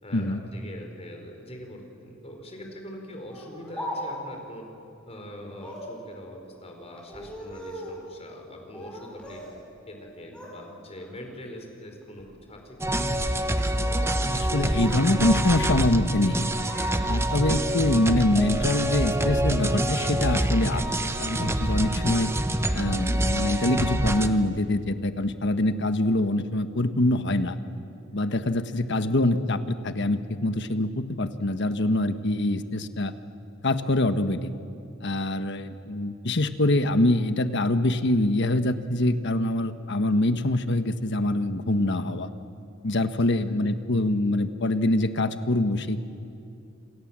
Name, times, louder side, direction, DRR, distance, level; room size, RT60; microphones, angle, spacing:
voice 1, 0.0-4.6 5.1-9.4 9.9-12.9 43.4-43.5, equal, 30° left, 3 dB, 5.0 m, -43 dB
Speech, 3.3-4.4 5.5-6.0 7.0-8.0 8.7-9.5 9.8-10.6 11.0-11.3 12.0-12.3 13.5-14.2 14.5-15.1 15.4-16.0 16.3-17.5, equal, 5° left, 7.4 m, -40 dB
sound 1, 12.8-24.3, right 1 dB, 15° right, 1.0 m, -26 dB
voice 2, 14.3-16.5 17.0-22.3 22.7-27.6 28.1-33.1 33.6-34.5 35.0-42.3 42.8-46.0, left 1 dB, 60° left, 10 dB, 1.3 m, -24 dB
28.0 x 27.0 x 7.5 m, 2.7 s
head